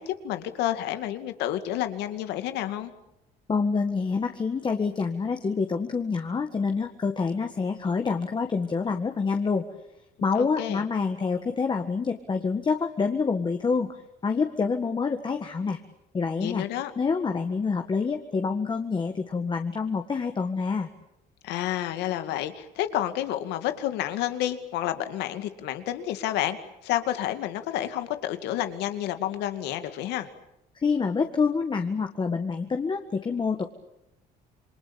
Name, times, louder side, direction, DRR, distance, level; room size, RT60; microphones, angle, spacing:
voice 1, 0.0-2.9 10.4-10.8 16.4-16.9 21.4-26.6 26.8-30.3, left 12 dB, 90° left, 9 dB, 2.3 m, -30 dB
voice 2, 3.5-9.6 10.2-13.9 14.2-15.8 16.1-16.7 17.0-20.9 30.8-33.6, left 5 dB, 30° left, 5 dB, 1.8 m, -27 dB
28.0 x 22.5 x 8.8 m, 0.86 s
cardioid pair, 110°, 17 cm